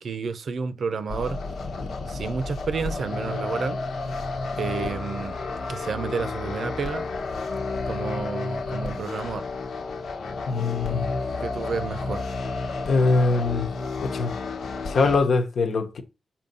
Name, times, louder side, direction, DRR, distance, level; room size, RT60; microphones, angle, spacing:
voice 1, 0.0-1.4 2.1-3.8 4.6-5.4 5.7-7.1 7.9-9.5 10.9-11.0 11.4-12.2, right 5 dB, 60° right, 0.7 m, -31 dB
sound 1, 1.1-15.2, left 3 dB, 85° left, 1.3 m, -31 dB
voice 2, 10.5-11.1 12.9-13.7 14.0-14.3 14.9-16.0, left 3 dB, 60° left, 1.1 m, -22 dB
7.0 x 2.9 x 5.3 m
wide cardioid pair, 160°, 0 cm